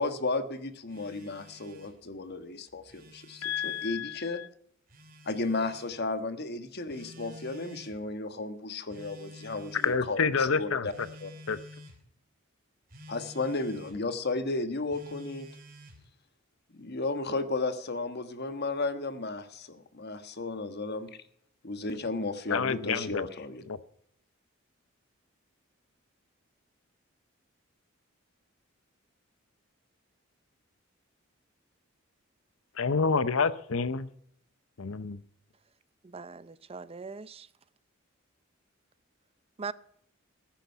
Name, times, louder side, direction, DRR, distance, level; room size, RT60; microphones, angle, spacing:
voice 1, 0.0-4.4 5.2-10.9 11.2-11.3 13.1-15.5 16.7-21.2 21.6-23.6, left 3 dB, 50° left, 1.4 m, -34 dB
Telephone, 0.9-2.0 2.7-3.9 4.9-5.9 6.9-8.0 8.9-10.0 10.9-12.0 12.9-14.0 14.9-16.0, left 1 dB, 45° right, 3.1 m, -50 dB
voice 2, 3.4-4.5 9.8-11.1 11.5-11.6 22.5-23.3 23.7-23.8 32.8-34.1 34.8-35.2, left 5 dB, 75° left, 0.7 m, -28 dB
voice 3, 36.0-37.5 39.6-39.7, right 5 dB, 30° right, 0.5 m, -40 dB
15.0 x 10.5 x 5.7 m
head